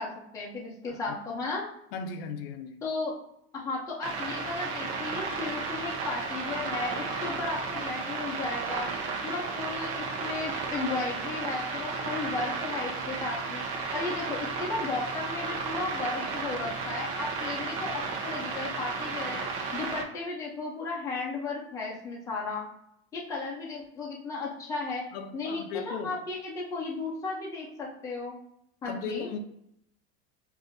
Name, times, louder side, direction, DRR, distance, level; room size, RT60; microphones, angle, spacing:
voice 1, 0.0-1.7 2.8-3.2 3.5-8.9 9.2-13.6 13.9-19.4 19.7-22.7 23.1-25.0 25.3-28.4 28.8-29.3, left 3 dB, 10° left, 0.5 m, -35 dB
voice 2, 1.9-2.8 25.1-26.2 28.8-29.4, left 5 dB, 60° left, 0.5 m, -37 dB
sound 1, 4.0-20.0, right 4 dB, 55° right, 0.9 m, -33 dB
6.7 x 2.6 x 2.6 m
supercardioid pair, 175°, 34 cm